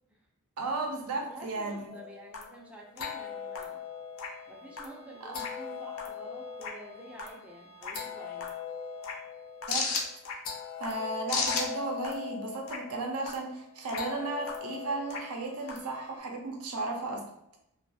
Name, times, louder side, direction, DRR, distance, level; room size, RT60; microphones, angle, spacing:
voice 1, 0.6-1.9 5.2-5.4 9.7-9.9 10.8-17.2, right 3 dB, 80° right, 2 dB, 0.5 m, -34 dB
voice 2, 1.2-3.8 4.5-8.6, right 1 dB, 5° right, -2 dB, 0.3 m, -49 dB
sound 1, 1.9-16.2, left 5 dB, 65° left, 0.4 m, -38 dB
2.3 x 2.3 x 2.6 m, 0.77 s
head